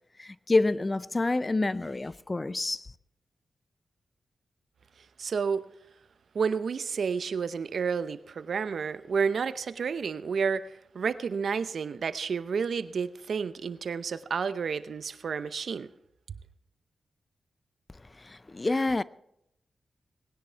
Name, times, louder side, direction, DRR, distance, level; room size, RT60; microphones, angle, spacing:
voice 1, 0.2-2.8 18.2-19.0, left 2 dB, 30° left, 0.5 m, -27 dB
voice 2, 5.2-5.6 6.3-15.9, right 6 dB, 75° right, 0.7 m, -30 dB
19.0 x 10.5 x 4.5 m
cardioid pair, 55°, 0 cm